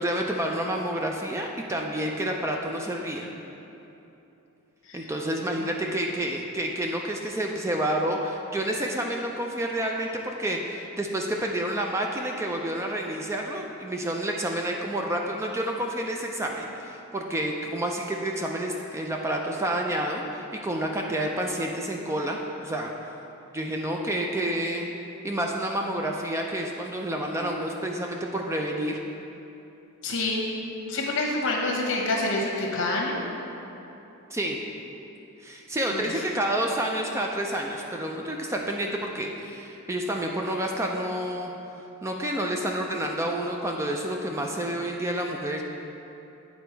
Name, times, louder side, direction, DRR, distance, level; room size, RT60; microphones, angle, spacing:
voice 1, 0.0-3.3 4.9-22.9 23.5-24.9 25.2-29.0 34.3-34.6 35.4-41.5 42.0-45.6, right 1 dB, 10° right, 1 dB, 0.3 m, -29 dB
voice 2, 30.0-30.4 30.9-33.2 35.9-36.0, left 2 dB, 60° left, -1 dB, 1.1 m, -27 dB
8.7 x 4.1 x 4.5 m, 3.0 s
head